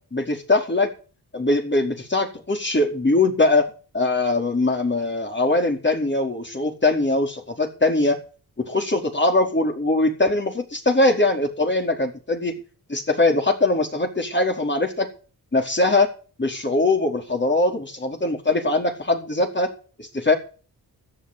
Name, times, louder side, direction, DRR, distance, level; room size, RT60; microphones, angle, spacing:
voice 1, 0.1-0.9 1.3-8.2 8.6-12.6 12.9-15.1 15.5-16.1 16.4-19.7 20.0-20.3, left 2 dB, 30° left, 3 dB, 4.6 m, -21 dB
13.5 x 8.2 x 9.4 m, 0.38 s
cardioid pair, 55°, 36 cm